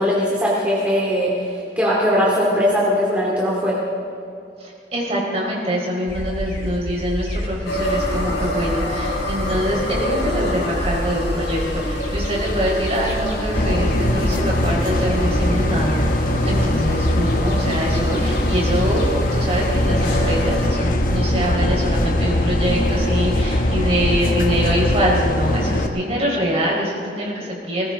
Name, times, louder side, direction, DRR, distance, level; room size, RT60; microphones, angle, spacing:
voice 1, 0.0-3.8, equal, 10° right, -6 dB, 2.3 m, -20 dB
voice 2, 4.6-16.0 16.4-27.9, equal, 35° right, -3 dB, 4.1 m, -24 dB
sound 1, 6.1-25.0, equal, 85° left, 3.1 m, -28 dB
sound 2, 7.6-20.7, left 1 dB, 70° left, 3.9 m, -28 dB
sound 3, 13.6-25.9, left 1 dB, 50° left, 1.0 m, -21 dB
20.5 x 18.5 x 3.6 m, 2.5 s
head